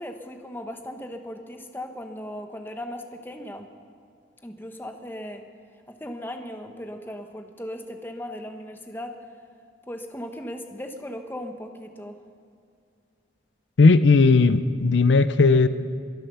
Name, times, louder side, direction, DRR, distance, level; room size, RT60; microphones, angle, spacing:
voice 1, 0.0-3.7 4.4-5.5 5.9-9.2 9.9-12.2, left 1 dB, 10° left, 5 dB, 0.9 m, -37 dB
voice 2, 13.8-15.7, left 3 dB, 75° left, 13 dB, 0.5 m, -16 dB
22.0 x 9.2 x 6.8 m, 2.3 s
head